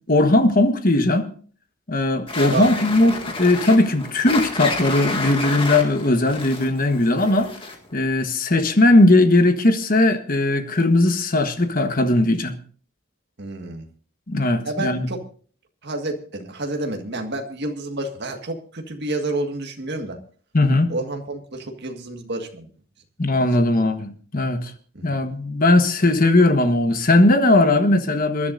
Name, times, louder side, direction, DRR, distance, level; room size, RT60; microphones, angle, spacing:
voice 1, 0.1-1.3 1.9-7.5 7.9-12.5 14.3-15.1 20.5-20.9 23.2-24.7 25.0-28.5, left 2 dB, 40° left, 1.3 m, -18 dB
sound 1, 2.3-7.9, left 3 dB, 25° left, 2.0 m, -29 dB
voice 2, 13.4-13.9 14.6-15.2 15.8-20.2 20.9-22.7 23.3-23.4 24.9-25.2, right 2 dB, 50° right, 1.8 m, -29 dB
27.0 x 11.0 x 2.6 m
head